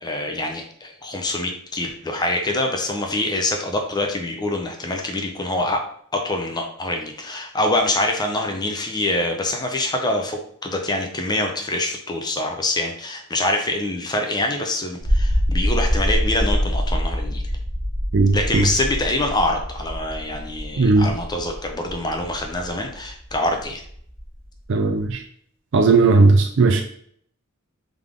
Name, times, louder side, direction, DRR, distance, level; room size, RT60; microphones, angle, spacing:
voice 1, 0.0-5.8 6.1-17.4 18.3-23.8, left 1 dB, 20° left, 3 dB, 0.6 m, -25 dB
sound 1, 15.0-25.1, equal, 35° left, 1.2 m, -25 dB
voice 2, 18.1-18.6 20.8-21.1 24.7-25.2 25.7-26.8, right 3 dB, 65° right, 3 dB, 0.4 m, -16 dB
3.6 x 3.5 x 3.6 m, 0.62 s
head